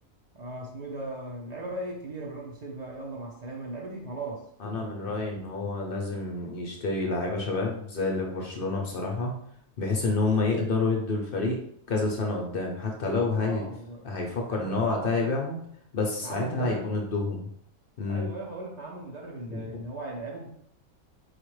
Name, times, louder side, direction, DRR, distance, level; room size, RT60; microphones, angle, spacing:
voice 1, 0.3-4.5 13.4-14.1 14.5-15.3 16.2-16.9 18.1-20.5, right 2 dB, 50° right, -2 dB, 0.5 m, -38 dB
voice 2, 4.6-9.3 9.8-11.6 11.9-13.6 14.0-15.6 15.9-17.5 18.0-18.3 19.5-19.7, left 3 dB, 55° left, 0 dB, 0.6 m, -28 dB
4.4 x 2.4 x 3.1 m, 0.69 s
omnidirectional pair, 1.5 m